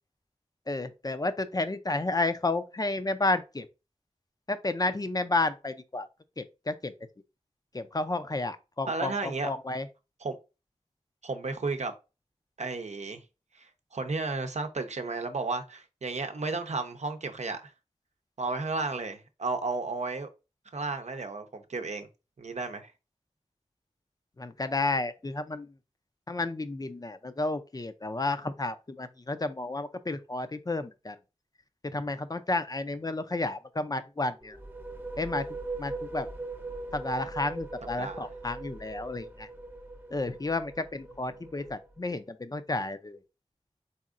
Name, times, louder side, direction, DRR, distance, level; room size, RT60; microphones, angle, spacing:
voice 1, 0.7-3.7 4.5-6.1 6.4-6.9 7.7-9.9 24.4-25.7 26.3-31.2 31.9-34.6 35.2-35.5 35.8-36.3 36.9-39.5 40.1-43.2, left 2 dB, 35° left, 0.5 m, -31 dB
voice 2, 8.9-9.5 10.2-10.4 11.2-11.9 12.6-13.2 13.5-17.7 18.4-20.3 20.7-22.1 22.4-22.9 38.0-38.3 41.5-41.7, right 3 dB, 80° right, 0.7 m, -33 dB
sound 1, 34.4-42.0, right 2 dB, 15° right, 0.5 m, -40 dB
4.2 x 3.6 x 2.5 m
wide cardioid pair, 55°, 12 cm